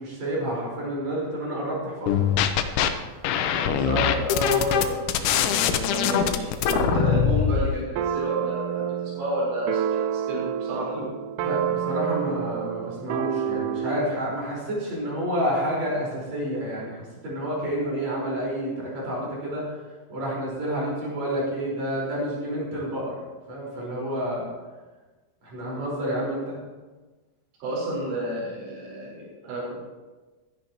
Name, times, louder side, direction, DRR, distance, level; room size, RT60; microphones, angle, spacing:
voice 1, 0.0-2.3 10.9-11.0 11.4-19.7 20.1-23.1 23.5-24.5 25.4-26.6, equal, 35° right, -5 dB, 6.0 m, -29 dB
sound 1, 2.1-2.9 3.2-7.7, left 9 dB, 85° left, 3.1 m, -22 dB
voice 2, 3.6-9.8 10.1-11.0 27.6-29.8, equal, 70° right, -7 dB, 7.0 m, -30 dB
sound 2, 6.7-7.3 8.0-14.2, right 9 dB, 85° right, 2.3 m, -29 dB
16.0 x 13.0 x 3.1 m, 1.3 s
omnidirectional pair, 5.3 m